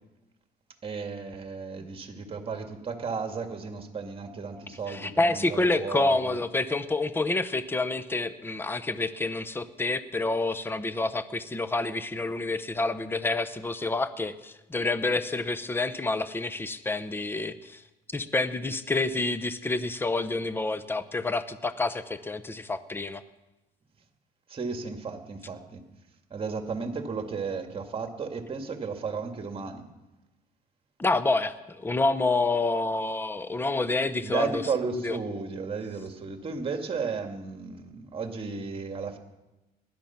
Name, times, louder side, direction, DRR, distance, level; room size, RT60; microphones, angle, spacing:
voice 1, 0.8-6.4 24.5-25.8 26.3-29.9 34.2-39.2, right 5 dB, 35° right, 5 dB, 2.2 m, -34 dB
voice 2, 4.9-17.8 18.1-23.2 31.0-35.2, left 2 dB, 15° left, 13 dB, 0.8 m, -28 dB
19.5 x 12.0 x 5.9 m, 1.0 s
cardioid pair, 110°, 17 cm